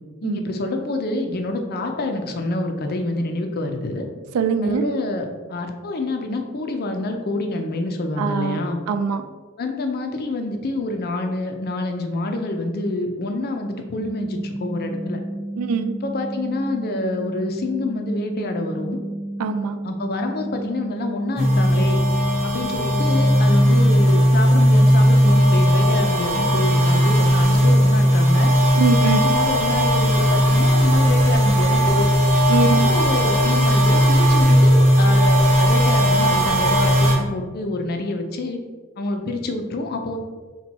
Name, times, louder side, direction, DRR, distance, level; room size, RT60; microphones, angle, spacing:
voice 1, 0.2-4.1 4.6-8.8 9.6-15.2 16.0-19.0 19.8-22.0 22.4-28.5 29.0-32.1 32.8-38.6 39.0-40.2, left 2 dB, 45° left, 5 dB, 0.5 m, -27 dB
voice 2, 4.3-4.8 8.2-8.6 8.9-9.2 15.6-16.0 19.4-19.8 28.7-29.2 32.5-32.9, right 5 dB, 70° right, 10 dB, 0.3 m, -22 dB
sound 1, 14.0-24.0, right 1 dB, 5° right, 0.5 m, -32 dB
sound 2, 21.4-37.1, equal, 30° right, 0.8 m, -16 dB
4.3 x 2.2 x 4.1 m, 1.4 s
head